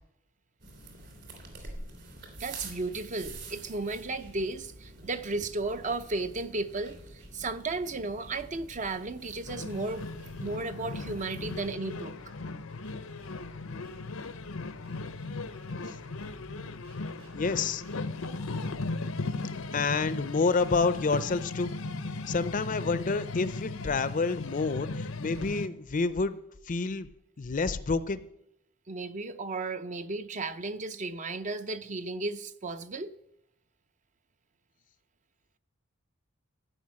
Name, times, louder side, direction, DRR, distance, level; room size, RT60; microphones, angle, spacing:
sound 1, 0.6-11.7, right 2 dB, 50° right, 3.0 m, -47 dB
voice 1, 2.4-10.1 10.4-12.1 28.9-33.1, right 3 dB, 35° right, 0.6 m, -34 dB
sound 2, 2.4-18.4, equal, 80° right, 4.3 m, -57 dB
sound 3, 9.5-25.7, left 3 dB, 85° left, 0.9 m, -37 dB
voice 2, 17.3-17.8 19.7-21.8 22.3-26.4 26.7-27.1 27.4-28.3, left 4 dB, 40° left, 0.5 m, -28 dB
14.5 x 5.5 x 8.6 m
head